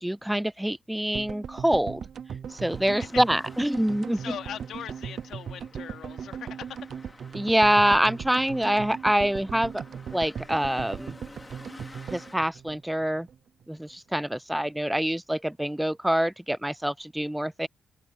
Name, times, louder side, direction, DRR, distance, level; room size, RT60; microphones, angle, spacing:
voice 1, 0.0-2.1 2.5-4.2 7.3-9.8 10.1-11.1 12.1-13.3 13.7-17.7, right 1 dB, 5° right, 0.3 m, -25 dB
sound 1, 1.1-13.4 13.6-13.7 13.9-14.0, right 7 dB, 60° right, 0.7 m, -39 dB
sound 2, 2.5-12.4, left 2 dB, 20° left, 2.9 m, -51 dB
voice 2, 4.1-6.8, left 9 dB, 75° left, 3.0 m, -40 dB
open air
cardioid pair, 75°, 0 cm